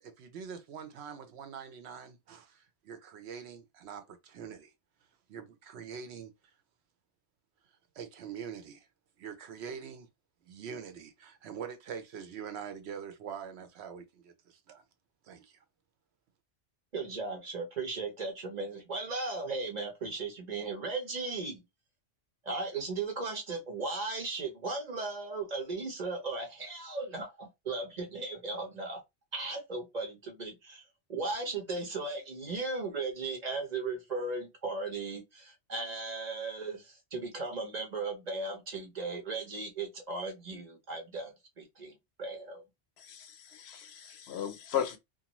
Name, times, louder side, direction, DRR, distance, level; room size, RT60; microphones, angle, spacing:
voice 1, 0.0-4.7 5.3-6.3 8.0-8.9 9.2-10.1 10.4-14.8 15.2-15.6, right 7 dB, 75° right, 0.9 m, -44 dB
voice 2, 16.9-21.6 22.4-29.0 29.3-30.8 31.1-42.6, right 3 dB, 45° right, 0.7 m, -37 dB
voice 3, 43.0-45.0, left 9 dB, 70° left, 0.8 m, -36 dB
2.5 x 2.2 x 2.9 m
omnidirectional pair, 1.2 m